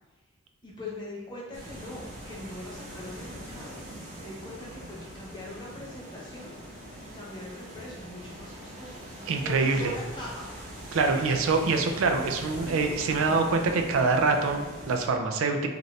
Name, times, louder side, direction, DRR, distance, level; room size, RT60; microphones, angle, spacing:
voice 1, 0.6-3.8 4.2-6.6 7.0-9.0 9.4-10.5 10.9-11.1, left 2 dB, 25° left, -5 dB, 0.8 m, -41 dB
sound 1, 1.5-15.1, equal, 40° right, 0.7 m, -42 dB
voice 2, 9.3-9.9 10.9-15.7, right 4 dB, 85° right, 4 dB, 0.4 m, -25 dB
2.7 x 2.5 x 3.1 m, 1.3 s
head